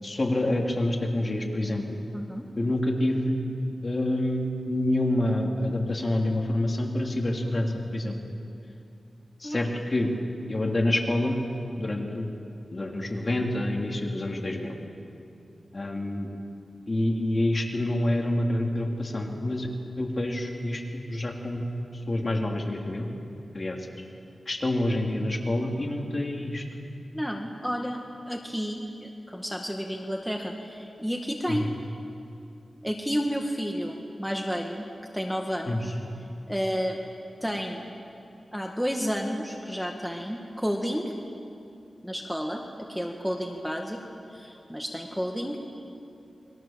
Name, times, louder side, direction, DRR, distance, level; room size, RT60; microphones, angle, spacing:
voice 1, 0.0-2.0 2.6-3.4 3.8-8.2 9.4-10.1 10.5-11.4 11.8-12.4 12.7-14.7 15.7-16.3 16.9-19.7 20.0-21.7 21.9-23.1 23.5-23.8 24.4-26.6 31.5-31.7 35.7-35.9, left 1 dB, 35° left, 1 dB, 3.4 m, -27 dB
voice 2, 2.1-2.5 9.4-9.6 27.1-28.0 28.3-31.6 32.8-34.9 35.1-36.0 36.5-37.0 37.4-37.8 38.5-41.2 42.0-42.6 42.9-45.6, equal, ahead, 2 dB, 1.9 m, -31 dB
29.0 x 22.0 x 7.5 m, 2.6 s
wide cardioid pair, 100°, 0 cm